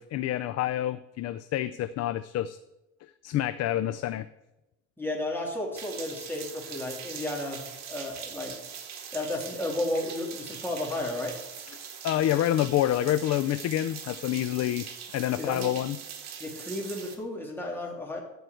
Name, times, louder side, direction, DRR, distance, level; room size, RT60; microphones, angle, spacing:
voice 1, 0.0-2.6 3.2-4.3 12.0-14.9 15.1-16.0, left 13 dB, 50° left, 13 dB, 0.5 m, -27 dB
voice 2, 5.0-7.6 7.9-11.4 15.4-15.7 16.4-18.2, left 1 dB, 5° left, -1 dB, 2.7 m, -33 dB
sound 1, 5.7-17.2, right 7 dB, 50° right, 2.0 m, -42 dB
14.0 x 4.8 x 7.8 m, 0.94 s
supercardioid pair, 105°, 34 cm